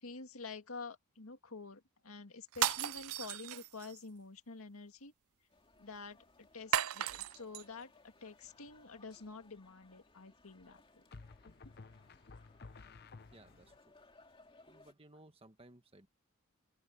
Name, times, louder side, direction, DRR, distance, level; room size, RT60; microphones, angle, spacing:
voice 1, 0.0-5.1 5.8-11.0, left 4 dB, 75° left, 2.0 m, -49 dB
sound 1, 2.5-4.0 6.7-7.6, right 11 dB, 80° right, 0.5 m, -35 dB
sound 2, 5.5-14.9, left 2 dB, 25° left, 2.6 m, -65 dB
sound 3, 8.4-8.9 11.1-13.8, left 3 dB, 45° left, 0.7 m, -54 dB
voice 2, 13.3-14.0 14.6-16.1, right 1 dB, 25° right, 1.6 m, -60 dB
open air
head